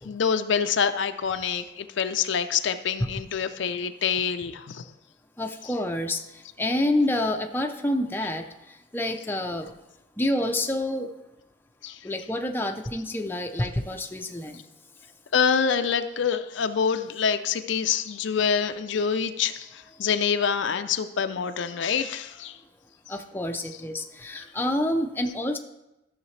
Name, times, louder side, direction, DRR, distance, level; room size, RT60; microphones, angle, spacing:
voice 1, 0.0-4.8 11.8-12.0 15.3-22.6, left 6 dB, 65° left, 9 dB, 0.4 m, -26 dB
voice 2, 5.4-6.2 6.6-8.4 8.9-9.7 10.2-11.1 12.0-14.6 23.1-25.6, left 1 dB, 10° left, 4 dB, 0.5 m, -28 dB
13.5 x 6.5 x 3.2 m, 0.94 s
head